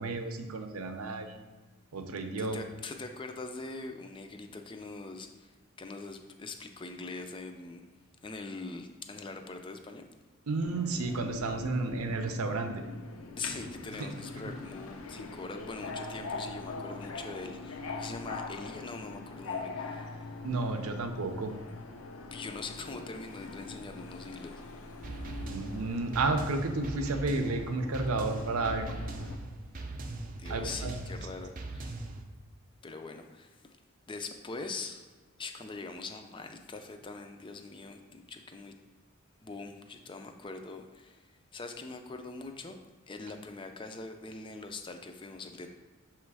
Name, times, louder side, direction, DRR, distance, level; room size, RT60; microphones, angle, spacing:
voice 1, 0.0-1.4 1.9-2.6 10.5-12.7 14.0-14.1 20.4-21.5 25.5-28.9 30.5-30.9, right 3 dB, 90° right, 6 dB, 0.6 m, -32 dB
voice 2, 2.4-5.5 5.8-7.8 8.2-10.0 13.4-20.1 22.3-24.6 30.4-32.0 32.8-33.6 34.1-35.1 35.4-38.7 39.4-41.3 41.5-42.8 43.1-45.7, left 3 dB, 25° left, 6 dB, 0.4 m, -42 dB
Subway metro underground, 10.6-29.4, left 3 dB, 75° left, 0.6 m, -43 dB
sound 1, 25.0-32.2, right 2 dB, 40° right, 0.5 m, -40 dB
6.7 x 3.1 x 4.7 m, 1.3 s
head